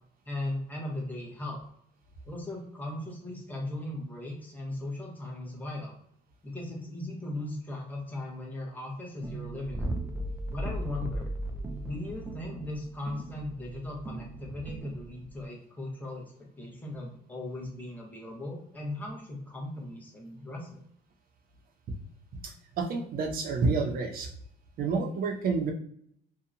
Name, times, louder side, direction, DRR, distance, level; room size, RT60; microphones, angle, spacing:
voice 1, 0.2-1.6 2.2-5.9 6.4-10.0 10.5-11.3 11.8-20.8, left 1 dB, 10° left, -2 dB, 1.0 m, -38 dB
sound 1, 9.2-15.4, right 1 dB, 15° right, 0.4 m, -37 dB
voice 2, 22.4-24.3 24.8-25.7, right 4 dB, 60° right, 4 dB, 0.6 m, -29 dB
2.7 x 2.3 x 2.5 m, 0.67 s
cardioid pair, 110°, 17 cm